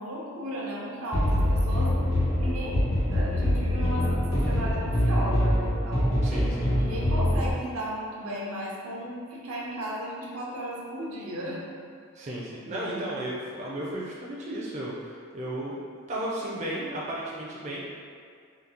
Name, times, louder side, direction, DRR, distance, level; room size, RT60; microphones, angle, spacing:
voice 1, 0.0-2.0 2.4-6.2 6.7-11.6 12.2-12.3 12.6-13.2, equal, 85° right, -4 dB, 0.7 m, -35 dB
sound 1, 1.1-7.5, equal, 75° left, 1.0 m, -24 dB
voice 2, 6.2-6.8 12.2-15.7 16.1-17.8, right 1 dB, 35° right, -6 dB, 0.4 m, -34 dB
3.8 x 2.3 x 2.8 m, 2.2 s
head